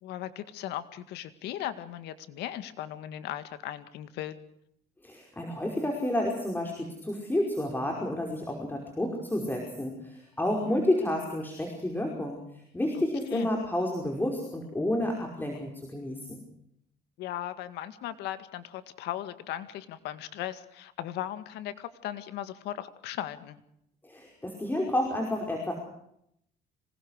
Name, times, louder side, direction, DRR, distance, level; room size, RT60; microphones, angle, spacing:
voice 1, 0.0-4.4 10.8-10.9 13.3-13.5 17.2-23.6, left 12 dB, 85° left, 11 dB, 2.1 m, -37 dB
voice 2, 5.0-12.4 12.7-16.4 24.0-25.7, left 1 dB, 10° left, 1 dB, 5.3 m, -30 dB
26.0 x 20.0 x 6.6 m, 0.74 s
cardioid pair, 110°, 17 cm